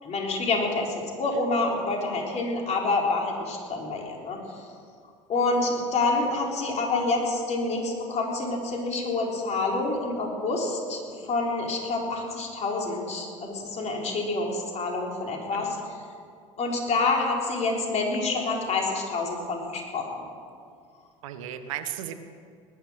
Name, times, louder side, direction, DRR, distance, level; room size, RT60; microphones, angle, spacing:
voice 1, 0.0-4.4 5.3-15.8 16.6-20.1, left 3 dB, 40° left, 0 dB, 4.0 m, -27 dB
voice 2, 15.5-15.9 21.2-22.1, right 11 dB, 75° right, 9 dB, 1.2 m, -36 dB
19.5 x 10.5 x 6.4 m, 2.3 s
hypercardioid pair, 70°, 17 cm